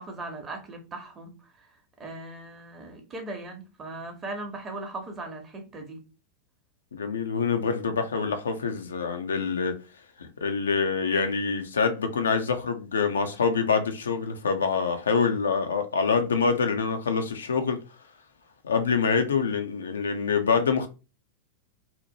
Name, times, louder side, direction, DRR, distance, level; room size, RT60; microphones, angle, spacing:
voice 1, 0.0-6.0, right 2 dB, 25° right, 0.8 m, -39 dB
voice 2, 6.9-9.7 10.2-17.8 18.6-20.9, left 5 dB, 70° left, 0.4 m, -25 dB
2.8 x 2.1 x 2.7 m
figure-of-eight pair, 90°, 0 cm